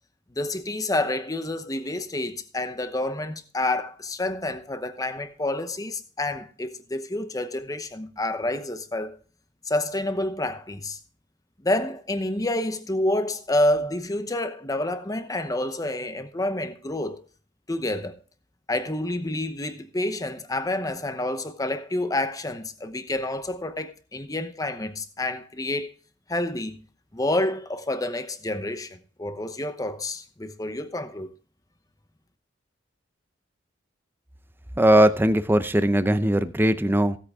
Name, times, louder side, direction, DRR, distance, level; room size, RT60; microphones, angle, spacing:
voice 1, 0.4-9.2 9.7-11.0 11.6-17.2 17.7-18.1 18.7-25.9 26.3-26.8 27.1-31.3, left 1 dB, 20° left, 0.9 m, -28 dB
voice 2, 34.8-37.2, right 1 dB, 10° right, 0.6 m, -19 dB
16.0 x 8.4 x 3.6 m
head